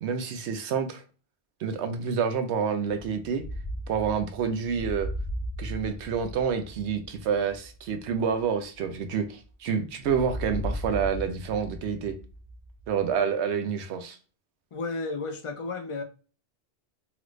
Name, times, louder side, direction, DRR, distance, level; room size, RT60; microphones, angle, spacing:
voice 1, 0.0-1.0 1.6-3.4 3.9-5.1 5.6-12.1 12.9-14.2, right 6 dB, 90° right, 0.9 m, -28 dB
sound 1, 3.0-9.5 10.0-13.2, equal, 50° right, 0.7 m, -37 dB
voice 2, 14.7-16.0, left 3 dB, 45° left, 0.4 m, -33 dB
3.0 x 2.4 x 3.1 m
omnidirectional pair, 1.1 m